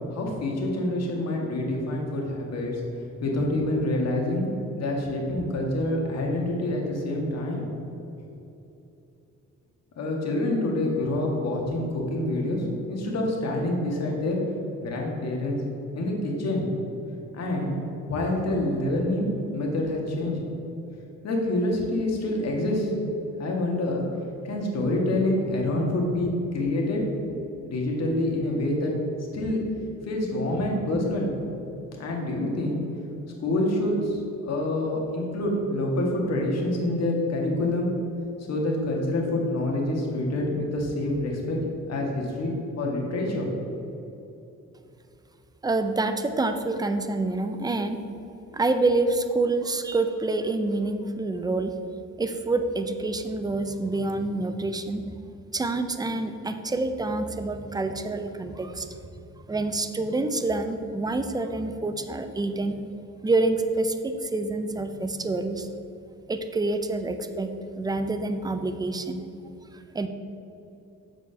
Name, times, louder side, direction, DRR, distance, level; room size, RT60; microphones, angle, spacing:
voice 1, 0.1-2.8 3.2-4.5 4.8-7.6 10.0-14.4 14.8-15.6 15.9-16.7 17.3-17.7 18.1-19.3 19.5-20.4 21.2-22.9 23.4-24.0 24.4-27.0 27.6-28.9 29.3-29.6 30.1-31.3 32.0-32.8 33.4-37.9 38.5-41.6 41.9-43.5, left 1 dB, 60° left, -1 dB, 1.8 m, -27 dB
voice 2, 45.6-48.0 48.5-51.7 52.2-55.1 55.5-58.9 59.5-62.8 63.2-65.7 66.3-67.5 67.8-69.2 69.9-70.1, right 2 dB, 15° right, 8 dB, 0.5 m, -27 dB
6.9 x 4.9 x 5.6 m, 2.9 s
cardioid pair, 90°, 30 cm